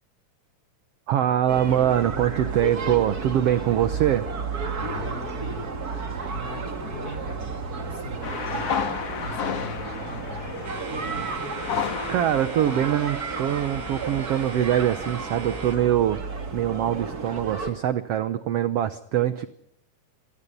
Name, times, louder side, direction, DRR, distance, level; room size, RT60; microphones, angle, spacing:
voice 1, 1.1-4.3 12.1-16.2 16.5-19.5, right 11 dB, 65° right, 12 dB, 1.6 m, -23 dB
sound 1, 1.5-17.7, right 4 dB, 30° right, 2.3 m, -33 dB
voice 2, 4.7-8.7 9.2-11.3, left 1 dB, 25° left, 8 dB, 4.8 m, -39 dB
sound 2, 8.2-15.9, left 7 dB, 50° left, 2.8 m, -34 dB
sound 3, 10.6-15.8, right 6 dB, 90° right, 0.7 m, -43 dB
27.5 x 20.0 x 5.5 m, 0.73 s
omnidirectional pair, 3.8 m